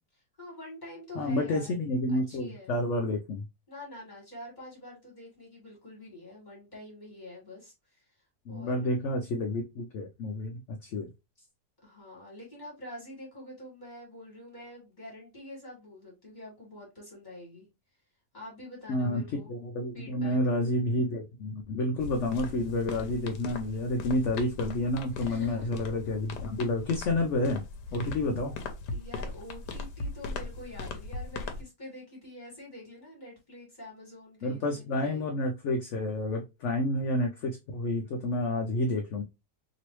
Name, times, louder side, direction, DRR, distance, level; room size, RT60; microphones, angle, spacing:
voice 1, 0.4-1.8 2.1-2.7 3.7-8.0 8.5-8.9 11.8-17.7 18.3-19.5 19.9-20.4 25.1-25.7 27.9-28.1 28.9-35.4, left 1 dB, 30° left, 1.8 m, -46 dB
voice 2, 1.1-3.4 8.5-11.1 18.9-27.6 27.9-28.6 34.4-39.2, left 1 dB, 60° left, 0.8 m, -30 dB
sound 1, 22.0-31.6, left 3 dB, 85° left, 1.3 m, -39 dB
3.0 x 3.0 x 3.0 m
omnidirectional pair, 1.7 m